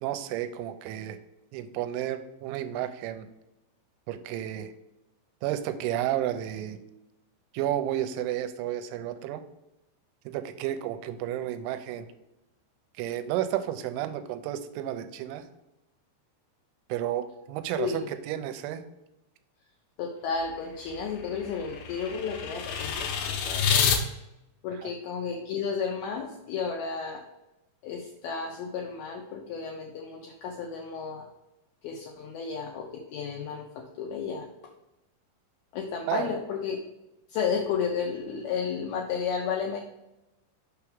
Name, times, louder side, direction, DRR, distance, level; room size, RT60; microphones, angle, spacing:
voice 1, 0.0-1.2 1.5-3.3 4.1-4.7 5.4-6.8 7.5-9.4 10.3-12.1 13.0-15.4 16.9-18.8 24.8-24.9 36.1-36.3, right 12 dB, 85° right, 10 dB, 3.0 m, -32 dB
voice 2, 17.8-18.1 20.0-23.9 24.6-27.2 27.8-31.3 31.8-34.5 35.7-36.8 37.3-39.8, left 6 dB, 90° left, 1 dB, 2.2 m, -32 dB
sound 1, 20.4-24.0, left 7 dB, 70° left, 2.5 m, -29 dB
6.6 x 5.8 x 3.5 m, 0.92 s
omnidirectional pair, 5.4 m